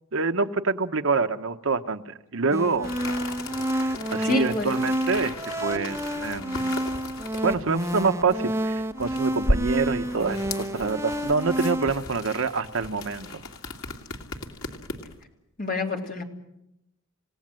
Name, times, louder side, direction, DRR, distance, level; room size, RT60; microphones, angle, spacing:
voice 1, 0.1-2.9 3.7-6.8 7.4-13.4, right 4 dB, 65° right, 8 dB, 1.0 m, -26 dB
sound 1, 2.5-11.9, right 1 dB, 15° right, 1.2 m, -29 dB
sound 2, 2.8-15.2, left 1 dB, 75° left, 2.6 m, -35 dB
voice 2, 4.2-4.7 15.6-16.2, left 3 dB, 40° left, 1 dB, 3.3 m, -28 dB
29.0 x 17.5 x 7.7 m, 0.87 s
head